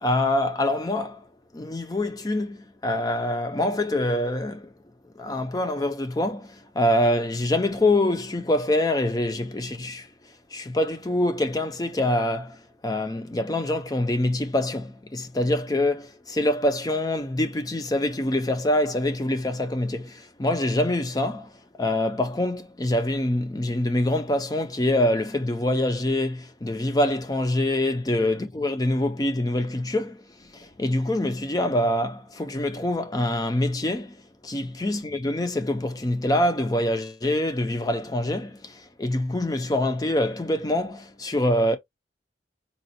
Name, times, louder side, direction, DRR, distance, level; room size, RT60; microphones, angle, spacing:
voice 1, 0.0-1.2 1.5-4.7 5.2-10.1 10.5-21.5 21.8-41.8, left 1 dB, 20° left, 0.5 m, -25 dB
4.1 x 2.2 x 2.7 m
head